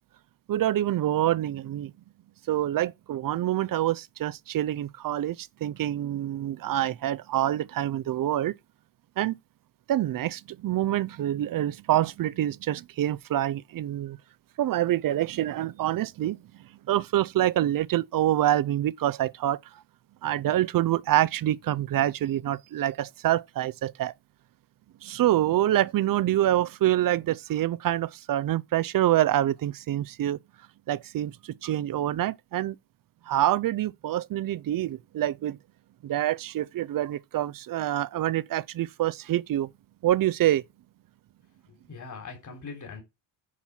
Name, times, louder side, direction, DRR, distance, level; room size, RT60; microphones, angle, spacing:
voice 1, 0.5-1.9 2.5-8.5 9.2-9.4 9.9-14.2 14.6-16.4 16.9-19.6 20.2-24.1 25.0-30.4 30.9-32.8 33.3-35.6 36.0-39.7 40.0-40.6, right 13 dB, 50° right, 0.5 m, -26 dB
voice 2, 41.7-43.0, left 4 dB, 40° left, 3.5 m, -41 dB
10.0 x 4.4 x 5.9 m
cardioid pair, 130°, 45 cm